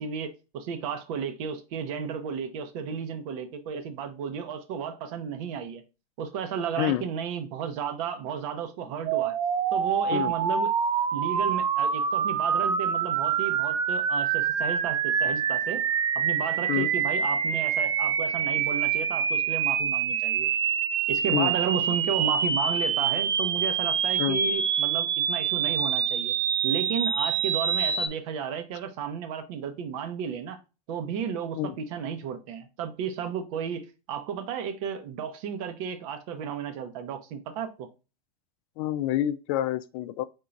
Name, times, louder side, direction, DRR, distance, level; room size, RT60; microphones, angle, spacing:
voice 1, 0.0-5.8 6.2-9.3 9.7-10.7 11.1-15.8 16.1-20.5 21.1-26.3 26.6-30.6 30.9-37.9, right 7 dB, 60° right, 0.9 m, -33 dB
sound 1, 9.1-28.1, right 7 dB, 20° right, 0.3 m, -26 dB
voice 2, 38.8-40.2, left 12 dB, 50° left, 0.5 m, -27 dB
4.4 x 3.7 x 2.6 m
supercardioid pair, 135°, 20 cm